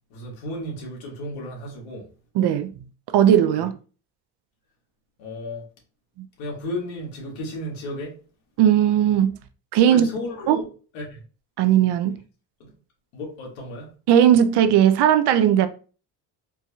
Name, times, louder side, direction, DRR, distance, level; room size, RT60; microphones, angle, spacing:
voice 1, 0.1-2.1 5.2-5.6 6.4-8.2 9.9-10.7 10.9-11.2 12.6-12.7 13.1-13.9, left 1 dB, 85° left, 1.6 m, -33 dB
voice 2, 2.3-2.7 3.1-3.7 6.2-6.3 8.6-9.4 9.7-10.1 10.5-10.6 11.6-12.2 14.1-15.7, right 10 dB, 60° right, 0.5 m, -17 dB
4.5 x 2.7 x 2.3 m
cardioid pair, 110°, 45 cm